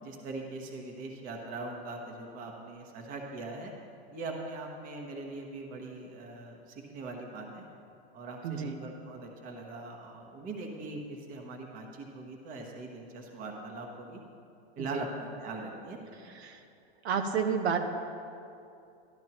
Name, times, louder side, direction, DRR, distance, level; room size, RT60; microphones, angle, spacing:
voice 1, 0.0-3.7 4.1-7.7 8.1-14.2 14.8-16.3, right 2 dB, 25° right, 1 dB, 1.1 m, -41 dB
voice 2, 8.4-8.8 14.8-15.0 16.2-16.6 17.0-17.8, right 6 dB, 75° right, 5 dB, 0.9 m, -31 dB
12.5 x 12.0 x 2.9 m, 2.6 s
supercardioid pair, 160°, 32 cm